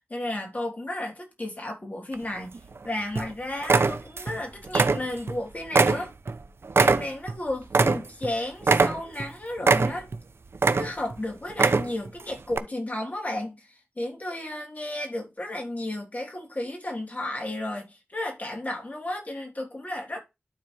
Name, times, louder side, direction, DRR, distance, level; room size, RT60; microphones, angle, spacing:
voice 1, 0.1-2.6 2.8-6.1 6.7-10.1 10.7-13.7 14.0-20.2, left 1 dB, 40° left, 3.3 m, -33 dB
sound 1, 2.1-2.8 3.2-3.3 3.6-4.4 4.7-5.4 5.7-8.3 8.6-9.3 9.6-10.2 10.5-11.1 11.5-12.1 12.5-12.6, right 4 dB, 70° right, 0.7 m, -22 dB
12.0 x 4.2 x 3.2 m
wide cardioid pair, 60°, 4 cm